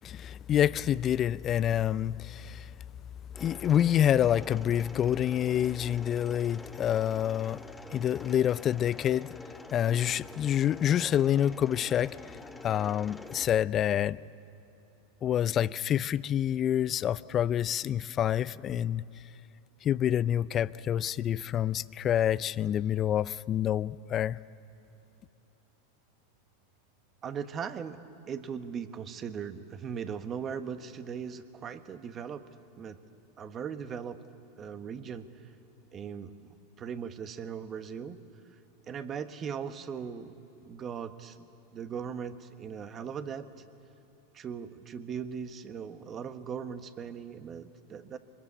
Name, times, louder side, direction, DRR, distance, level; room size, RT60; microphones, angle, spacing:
voice 1, 0.0-2.7 3.4-7.6 7.9-9.3 9.7-12.2 12.6-14.2 15.2-19.0 19.8-24.4, left 10 dB, 35° left, 0.5 m, -27 dB
Mechanisms, 3.3-13.5, left 2 dB, 5° left, 1.1 m, -47 dB
voice 2, 27.2-28.0 28.3-32.5 32.8-33.0 33.4-34.2 34.6-35.5 35.9-38.2 38.9-41.5 41.7-43.5 44.3-48.2, right 7 dB, 30° right, 1.2 m, -39 dB
24.5 x 21.0 x 8.4 m
hypercardioid pair, 100°, 0 cm